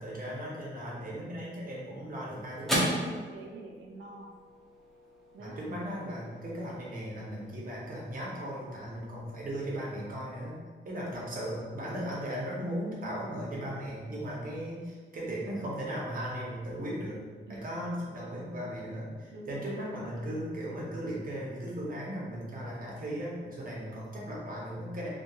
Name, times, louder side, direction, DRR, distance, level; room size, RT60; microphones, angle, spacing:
voice 1, 0.0-2.8 5.4-10.6 10.8-17.2 17.5-25.1, equal, 45° right, -5 dB, 0.7 m, -37 dB
sound 1, 1.4-10.0, equal, ahead, 0.5 m, -38 dB
voice 2, 2.8-4.3 5.3-5.6 17.5-17.8 19.3-20.3, right 2 dB, 80° right, -1 dB, 0.5 m, -46 dB
2.8 x 2.2 x 2.3 m, 1.5 s
wide cardioid pair, 130°, 19 cm